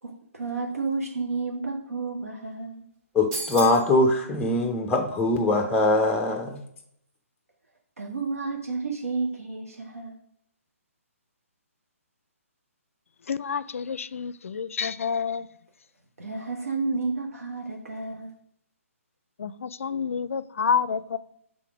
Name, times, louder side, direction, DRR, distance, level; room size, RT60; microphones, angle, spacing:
voice 1, 0.0-2.8 8.0-10.2 16.2-18.3, right 3 dB, 80° right, 1.1 m, -31 dB
voice 2, 3.1-6.6, left 2 dB, 5° left, 0.5 m, -22 dB
sound 1, 3.3-3.9, right 2 dB, 25° right, 1.0 m, -33 dB
voice 3, 13.3-15.5 19.4-21.2, left 6 dB, 65° left, 0.4 m, -28 dB
5.8 x 3.8 x 4.7 m
figure-of-eight pair, 140°, 8 cm